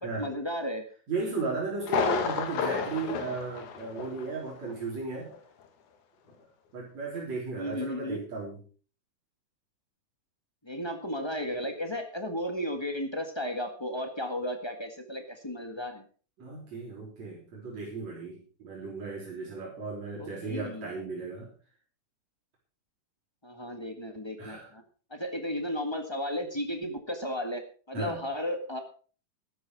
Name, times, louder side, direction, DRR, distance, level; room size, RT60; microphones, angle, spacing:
voice 1, 0.0-0.8 7.6-8.2 10.6-16.0 20.2-20.9 23.4-24.8 25.1-27.6 27.9-28.8, equal, 30° left, 5 dB, 0.5 m, -34 dB
voice 2, 1.1-5.3 6.7-8.6 16.4-21.5 24.4-24.7 27.9-28.2, right 4 dB, 60° right, -4 dB, 5.0 m, -35 dB
Thunder, 1.8-4.4 4.7-4.8 5.3-5.4, left 6 dB, 75° left, 3.0 m, -31 dB
13.5 x 12.0 x 4.6 m, 0.39 s
omnidirectional pair, 3.5 m